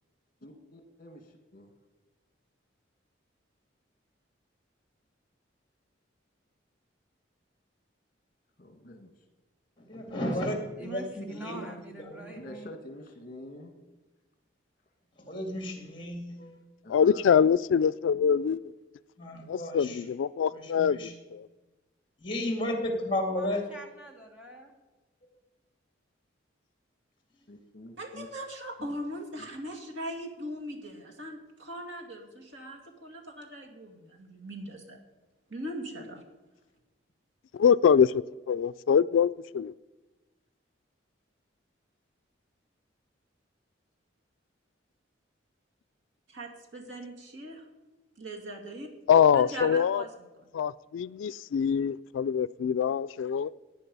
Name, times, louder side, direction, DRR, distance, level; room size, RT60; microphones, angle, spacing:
voice 1, 0.4-1.7 8.6-9.1 12.4-13.8 16.8-17.2 27.5-28.3 29.4-29.5, left 1 dB, 45° left, 1.9 m, -47 dB
voice 2, 9.8-10.5 10.8-12.3 15.2-16.5 19.2-20.0 20.5-21.1 22.2-23.7, left 1 dB, 25° left, 2.3 m, -33 dB
voice 3, 10.8-12.7 23.3-24.7, right 2 dB, 5° right, 2.3 m, -44 dB
voice 4, 16.9-18.7 19.5-21.5 37.5-39.7 49.1-50.0 50.5-53.5, left 7 dB, 85° left, 0.3 m, -24 dB
voice 5, 28.0-35.0 35.5-36.2 46.3-47.6 48.2-48.9 49.3-50.3, equal, 75° right, 2.3 m, -40 dB
16.0 x 9.9 x 5.4 m
head